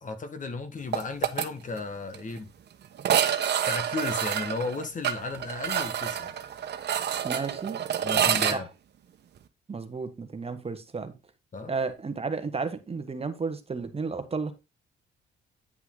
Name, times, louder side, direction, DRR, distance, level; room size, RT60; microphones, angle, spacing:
voice 1, 0.0-2.5 3.6-6.3 8.0-8.7 11.5-11.7, left 3 dB, 40° left, 1.7 m, -34 dB
sound 1, 0.9-1.5 1.8-1.9 2.1-2.2 3.0-8.6, right 9 dB, 60° right, 1.1 m, -27 dB
voice 2, 7.2-7.8 8.5-8.6 9.7-11.1 11.7-14.5, right 4 dB, 30° right, 1.4 m, -32 dB
9.8 x 5.8 x 3.9 m
cardioid pair, 90°, 20 cm